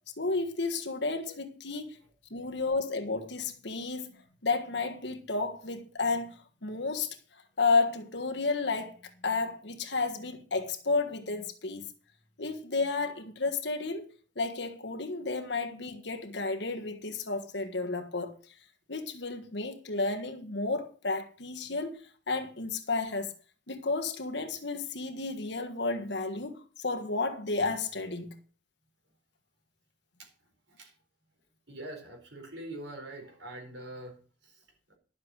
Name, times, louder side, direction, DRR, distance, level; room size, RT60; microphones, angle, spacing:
voice 1, 0.2-2.0 2.3-4.2 4.4-11.9 12.4-14.1 14.3-18.3 18.9-23.3 23.7-28.3, left 3 dB, 70° left, 1.6 m, -32 dB
voice 2, 31.7-34.2 34.4-34.6, right 1 dB, 75° right, 4.5 m, -43 dB
11.5 x 7.4 x 6.3 m
head